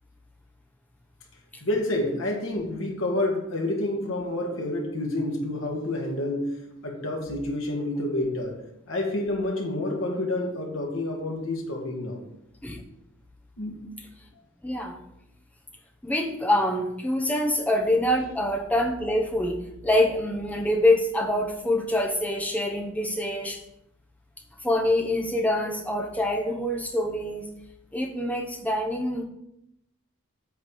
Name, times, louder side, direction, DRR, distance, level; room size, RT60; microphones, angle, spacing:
voice 1, 1.6-6.5 6.8-8.6 8.9-12.2 13.6-13.9, left 1 dB, 75° left, 0 dB, 2.1 m, -28 dB
voice 2, 14.6-15.0 16.0-23.6 24.6-27.5 27.9-29.2, left 1 dB, 5° left, 1 dB, 0.9 m, -25 dB
8.1 x 4.0 x 6.8 m, 0.81 s
head